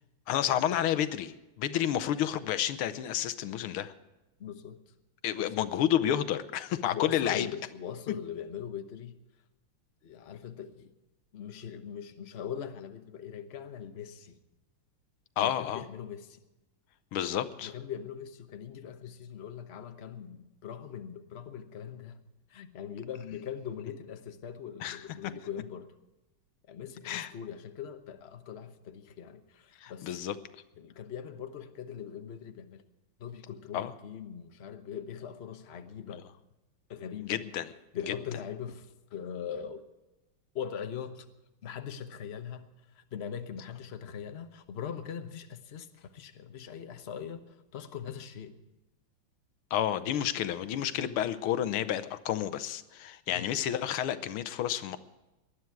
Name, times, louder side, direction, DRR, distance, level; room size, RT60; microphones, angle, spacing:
voice 1, 0.3-3.9 5.2-7.5 15.4-15.8 17.1-17.7 24.8-25.0 27.1-27.3 29.8-30.4 33.7-33.9 36.1-36.2 37.2-37.7 38.1-38.2 49.7-55.0, left 11 dB, 80° left, 1.7 m, -30 dB
voice 2, 4.4-4.8 5.4-5.7 6.8-9.1 10.0-10.9 11.3-14.4 15.4-16.4 17.6-22.2 22.5-25.9 26.7-30.2 30.8-32.8 33.2-36.3 36.9-37.4 37.9-39.8 40.5-41.3 41.6-42.6 42.9-48.5 53.3-53.5, left 8 dB, 45° left, 0.9 m, -41 dB
19.5 x 12.0 x 4.7 m
omnidirectional pair, 2.4 m